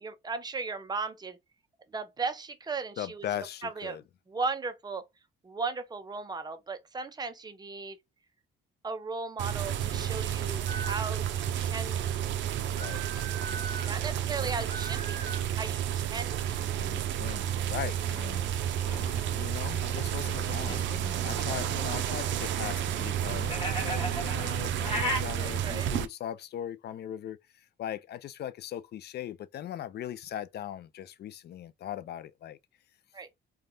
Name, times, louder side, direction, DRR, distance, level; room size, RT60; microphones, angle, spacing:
voice 1, 0.0-1.4 1.9-3.3 3.6-4.0 4.3-5.0 5.4-8.0 8.8-12.2 13.8-16.6 25.4-25.9 33.1-33.3, right 4 dB, 20° right, 0.6 m, -36 dB
voice 2, 3.0-4.0 12.7-13.0 16.7-18.4 19.2-27.4 27.8-32.6, left 11 dB, 55° left, 0.4 m, -39 dB
sound 1, 9.4-26.1, right 10 dB, 70° right, 0.4 m, -31 dB
sound 2, 10.7-11.1 12.8-14.0 14.7-15.5, right 5 dB, 50° right, 1.5 m, -40 dB
sound 3, 18.0-25.2, equal, 25° left, 1.2 m, -38 dB
3.3 x 2.3 x 2.6 m
cardioid pair, 90°, 20 cm